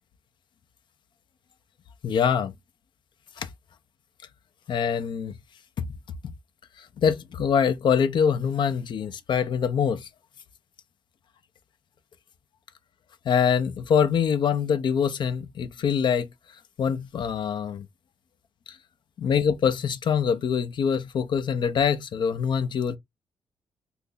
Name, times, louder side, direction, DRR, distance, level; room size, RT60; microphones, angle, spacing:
voice 1, 2.0-2.5 3.4-3.5 4.7-5.3 6.8-10.1 13.3-16.3 16.8-17.9 19.2-23.0, left 7 dB, 60° left, 0.6 m, -24 dB
2.8 x 2.6 x 3.7 m
cardioid pair, 90°, 9 cm